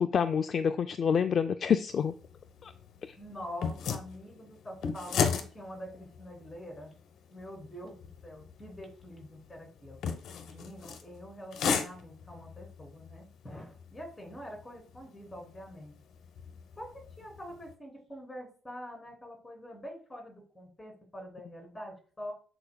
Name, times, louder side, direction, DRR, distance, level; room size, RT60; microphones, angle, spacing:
voice 1, 0.0-2.1 2.6-2.7 3.0-3.1, left 7 dB, 35° left, 8 dB, 0.3 m, -27 dB
sound 1, 1.9-17.7, left 6 dB, 60° left, 1.0 m, -38 dB
voice 2, 3.2-6.9 7.3-8.0 8.2-10.0 10.5-15.9 16.8-22.3, equal, 10° left, 1 dB, 3.2 m, -45 dB
13.5 x 4.8 x 2.3 m, 0.41 s
cardioid pair, 150°, 0 cm